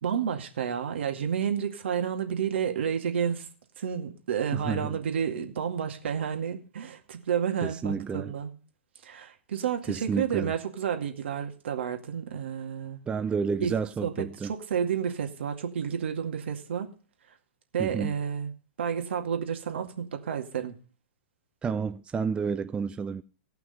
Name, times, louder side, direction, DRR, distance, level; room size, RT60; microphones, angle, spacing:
voice 1, 0.0-3.5 3.8-8.5 9.0-13.0 13.6-13.7 14.0-16.9 17.7-18.5 18.8-20.7, right 8 dB, 70° right, 2.2 m, -30 dB
voice 2, 4.5-5.0 7.6-8.3 9.9-10.5 13.1-14.5 17.8-18.1 21.6-23.2, right 5 dB, 15° right, 0.5 m, -30 dB
17.5 x 5.9 x 5.4 m
hypercardioid pair, 110°, 6 cm